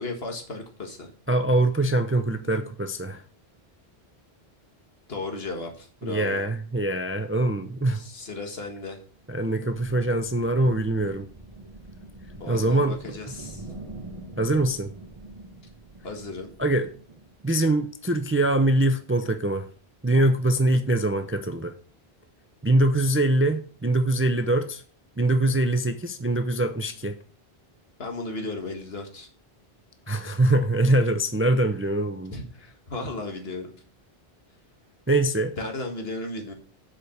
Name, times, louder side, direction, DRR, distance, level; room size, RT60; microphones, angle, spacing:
voice 1, 0.0-1.1 5.1-6.4 7.9-9.0 12.4-13.7 16.0-16.5 28.0-29.3 32.3-33.7 35.6-36.5, left 2 dB, 70° left, 1.8 m, -35 dB
voice 2, 1.3-3.2 6.0-8.0 9.3-11.3 12.5-13.3 14.4-14.9 16.6-16.9 17.4-19.7 20.0-21.7 22.6-24.8 25.2-27.2 30.1-32.3 35.1-35.5, right 1 dB, 15° right, 0.5 m, -23 dB
sound 1, 9.1-17.6, right 2 dB, 30° right, 1.3 m, -45 dB
7.5 x 5.1 x 6.3 m
omnidirectional pair, 1.1 m